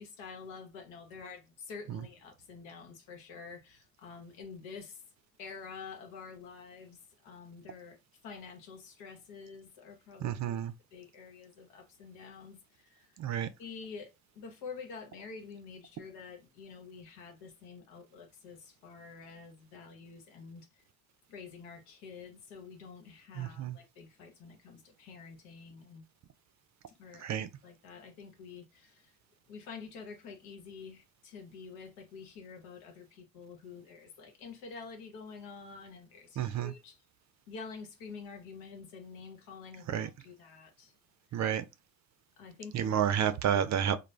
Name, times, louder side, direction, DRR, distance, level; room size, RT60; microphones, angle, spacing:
voice 1, 0.0-4.9 5.4-7.0 7.2-8.0 8.2-10.6 10.9-12.6 13.6-14.1 14.4-20.7 21.3-26.0 27.0-27.3 27.6-28.9 29.5-37.0 37.5-40.9 42.4-43.0 43.3-43.6, left 5 dB, 85° left, 0.9 m, -48 dB
voice 2, 10.2-10.7 13.2-13.5 23.4-23.8 27.2-27.5 36.4-36.7 39.9-40.1 41.3-41.6 42.7-44.0, right 9 dB, 45° right, 0.4 m, -30 dB
2.4 x 2.0 x 3.1 m
supercardioid pair, 65°, 42 cm